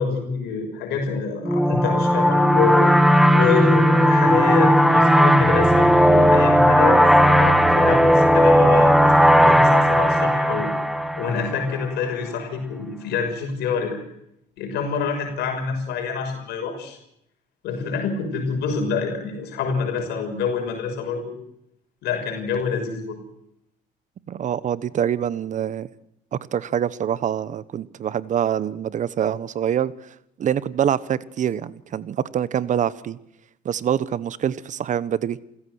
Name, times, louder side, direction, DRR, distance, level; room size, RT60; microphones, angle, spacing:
voice 1, 0.0-2.9 3.3-14.0 14.6-17.0 17.6-21.3 22.0-23.2, left 5 dB, 80° left, 6.1 m, -26 dB
sound 1, 1.4-11.8, equal, ahead, 1.7 m, -16 dB
voice 2, 24.3-25.9 26.3-29.9 30.4-33.2 33.6-35.4, right 9 dB, 45° right, 1.1 m, -25 dB
28.5 x 16.0 x 7.9 m
cardioid pair, 110°, 17 cm